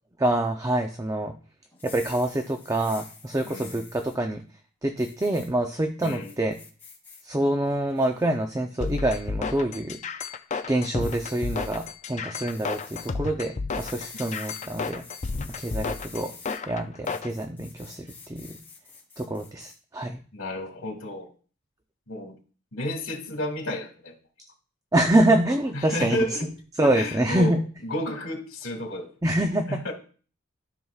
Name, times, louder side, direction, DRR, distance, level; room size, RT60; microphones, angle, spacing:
voice 1, 0.2-1.3 1.8-4.4 4.8-6.6 7.2-10.0 10.7-15.0 15.6-16.3 16.7-18.6 19.2-20.2 24.9-26.2 26.8-27.6 29.2-29.9, right 1 dB, 15° right, 5 dB, 0.5 m, -26 dB
sound 1, 1.7-4.2 5.0-5.5 6.0-7.2 7.7-8.3 8.9-9.2 11.0-11.9 12.5-13.1 13.7-16.6 17.0-19.7, left 5 dB, 10° left, 2.5 m, -47 dB
voice 2, 3.4-3.8 6.0-6.3 20.3-21.3 22.1-22.3 22.7-24.1 25.7-26.5 26.8-29.1 29.7-29.9, left 1 dB, 80° left, 1 dB, 2.1 m, -32 dB
sound 2, 8.8-17.3, left 4 dB, 35° left, 0.4 m, -32 dB
12.5 x 5.9 x 2.4 m, 0.41 s
head